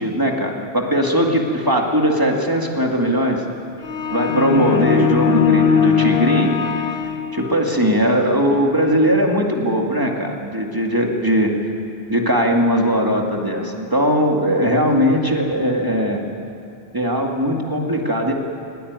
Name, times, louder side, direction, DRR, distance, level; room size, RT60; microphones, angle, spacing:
voice 1, 0.0-3.4 4.1-6.6 7.3-11.8 12.1-16.2 16.9-18.3, equal, 20° right, 1 dB, 2.3 m, -19 dB
sound 1, 3.8-7.8, left 7 dB, 60° left, 1.1 m, -19 dB
19.0 x 18.5 x 9.7 m, 2.7 s
omnidirectional pair, 1.1 m